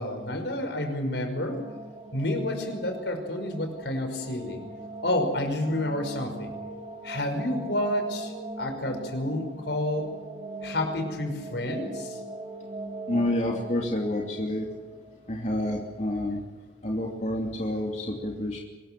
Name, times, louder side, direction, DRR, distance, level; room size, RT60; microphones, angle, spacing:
voice 1, 0.0-1.6 2.1-4.6 5.0-6.5 7.0-10.1 10.6-12.2, left 1 dB, 75° left, 5 dB, 5.5 m, -29 dB
sound 1, 1.0-16.0, right 2 dB, 30° right, 3.2 m, -41 dB
voice 2, 13.1-14.7 15.3-16.4 16.8-18.6, left 1 dB, 40° left, 0 dB, 2.8 m, -28 dB
25.0 x 21.0 x 7.7 m, 1.2 s
head